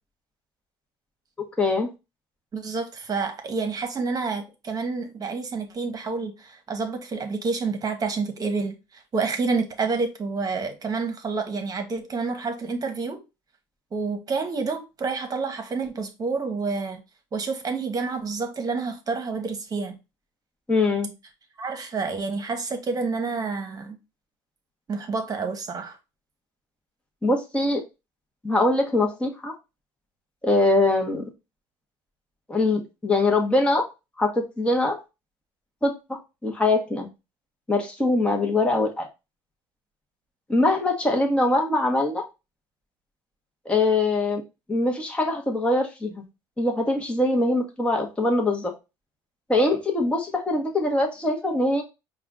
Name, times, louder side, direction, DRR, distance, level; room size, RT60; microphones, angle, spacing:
voice 1, 1.6-1.9 20.7-21.1 27.2-27.8 28.4-29.5 30.4-31.2 32.5-33.9 34.2-35.0 35.8-35.9 36.4-37.1 37.7-39.1 40.5-42.3 43.6-44.4 44.7-46.2 46.6-48.7 49.5-51.8, left 2 dB, 10° left, 1.1 m, -22 dB
voice 2, 2.5-13.2 13.9-17.0 17.3-20.0 21.6-24.0 24.9-26.0, right 4 dB, 35° right, 1.2 m, -29 dB
4.9 x 2.4 x 3.7 m
supercardioid pair, 80°, 11 cm